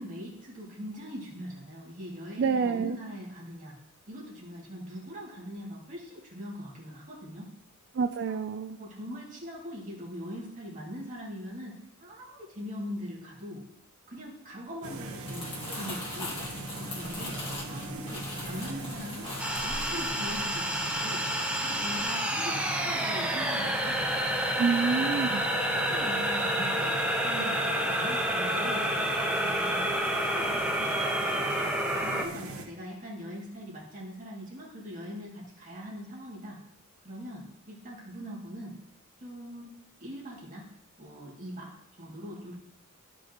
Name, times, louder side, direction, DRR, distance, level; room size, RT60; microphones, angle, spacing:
voice 1, 0.0-3.8 4.1-7.5 8.3-8.4 8.8-13.6 14.1-16.4 16.7-17.4 17.7-19.3 19.6-21.2 21.6-24.0 25.5-28.9 29.4-29.9 30.2-31.4 32.0-36.6 37.0-38.8 39.2-39.7 40.0-40.7 41.0-42.6, equal, 35° right, -4 dB, 2.3 m, -41 dB
voice 2, 2.4-3.0 7.9-8.8 24.6-25.5, right 5 dB, 55° right, 7 dB, 0.4 m, -28 dB
sound 1, 14.8-32.6, right 2 dB, 80° right, 1.1 m, -40 dB
Crumpling crinkling, 15.1-21.4 21.7-22.0, left 2 dB, 25° left, 1.8 m, -41 dB
sound 2, 19.4-32.3, equal, 5° right, 0.7 m, -29 dB
14.0 x 5.3 x 3.0 m, 0.77 s
head